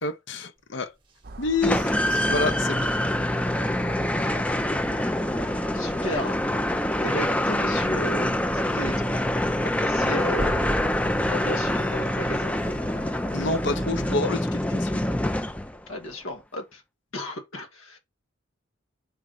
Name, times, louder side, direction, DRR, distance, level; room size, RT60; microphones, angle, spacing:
voice 1, 0.0-0.9 1.4-1.8 2.3-2.9 13.3-15.0, left 3 dB, 60° left, 0.8 m, -28 dB
sound 1, 1.1-5.0 5.4-5.5 5.9-6.3 6.7-6.8 7.3-7.4 10.4-13.0, right 1 dB, 25° right, 1.0 m, -39 dB
sound 2, 1.2-14.2, right 3 dB, 45° right, 0.6 m, -41 dB
sound 3, 1.6-15.9, left 1 dB, 5° left, 0.4 m, -25 dB
voice 2, 5.7-6.4 7.0-9.1 9.6-10.6 11.3-12.5 15.9-16.8 17.1-18.0, left 1 dB, 85° left, 1.6 m, -34 dB
4.8 x 4.0 x 4.9 m
head